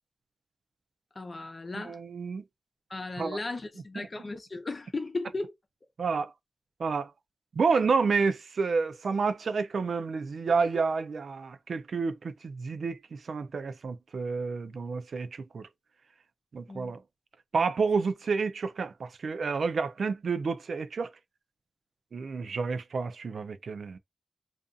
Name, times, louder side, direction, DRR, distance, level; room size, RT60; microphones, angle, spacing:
voice 1, 1.1-2.0 2.9-5.5 16.7-16.9, left 3 dB, 40° left, 0.7 m, -36 dB
voice 2, 1.7-2.4 3.2-3.4 4.0-4.1 6.0-6.3 6.8-7.1 7.5-15.7 16.5-17.0 17.5-21.1 22.1-24.0, right 4 dB, 70° right, 0.3 m, -29 dB
2.5 x 2.3 x 2.5 m
cardioid pair, 75°, 0 cm